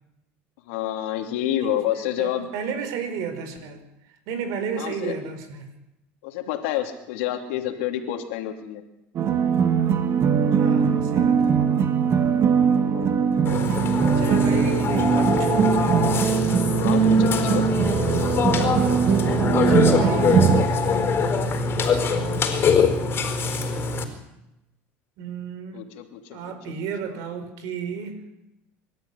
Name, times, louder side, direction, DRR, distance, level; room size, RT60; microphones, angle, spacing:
voice 1, 0.7-2.5 4.8-5.1 6.2-8.8 12.8-13.2 16.7-17.7 25.7-26.4 27.1-27.2, left 11 dB, 80° left, 4 dB, 3.0 m, -28 dB
voice 2, 1.6-3.8 4.3-5.7 10.5-11.7 14.1-16.0 19.5-20.4 21.8-22.5 25.2-25.8 26.3-28.2, right 6 dB, 65° right, 9 dB, 4.9 m, -33 dB
sound 1, 9.2-20.6, right 7 dB, 40° right, 2.0 m, -21 dB
Burping eructation, 13.5-24.0, left 4 dB, 35° left, 4.5 m, -23 dB
25.0 x 13.0 x 9.9 m, 0.89 s
supercardioid pair, 115°, 6 cm